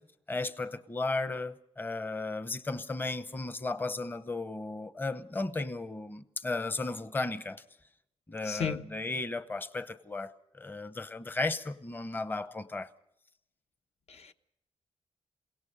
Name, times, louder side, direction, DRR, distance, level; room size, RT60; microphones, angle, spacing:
voice 1, 0.3-7.6 8.3-12.9, left 3 dB, 15° left, 0.8 m, -35 dB
voice 2, 8.4-8.9 14.1-14.3, left 6 dB, 65° left, 1.1 m, -34 dB
28.5 x 17.5 x 5.5 m
wide cardioid pair, 145°, 12 cm